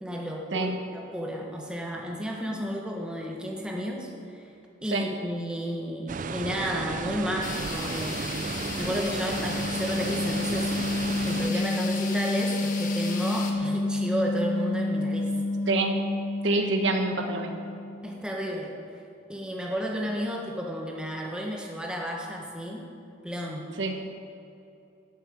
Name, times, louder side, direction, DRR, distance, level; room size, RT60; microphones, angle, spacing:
voice 1, 0.0-4.5 4.8-10.7 11.2-15.3 18.0-18.7 19.3-22.9 23.2-23.7, equal, 5° right, -1 dB, 1.4 m, -32 dB
sound 1, 6.1-11.5, right 5 dB, 40° right, 0.4 m, -34 dB
sound 2, 7.4-13.5, left 5 dB, 40° left, 1.4 m, -37 dB
sound 3, 8.0-18.1, left 2 dB, 20° right, 1.2 m, -30 dB
voice 2, 16.4-17.6 23.8-23.9, right 3 dB, 65° right, 4 dB, 1.2 m, -26 dB
12.0 x 7.5 x 8.5 m, 2.7 s
head